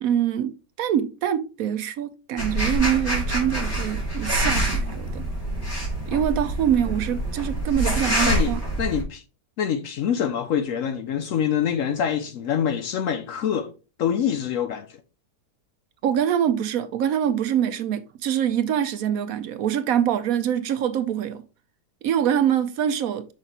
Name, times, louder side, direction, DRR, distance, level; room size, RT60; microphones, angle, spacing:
voice 1, 0.0-5.2 6.1-8.6 16.0-21.4 22.0-23.3, right 9 dB, 70° right, 1.0 m, -24 dB
sound 1, 2.4-9.0, right 1 dB, 45° left, 3.0 m, -26 dB
voice 2, 8.2-9.2 9.6-13.7 14.0-14.9, left 8 dB, 65° left, 0.8 m, -25 dB
5.9 x 5.7 x 2.9 m
omnidirectional pair, 1.7 m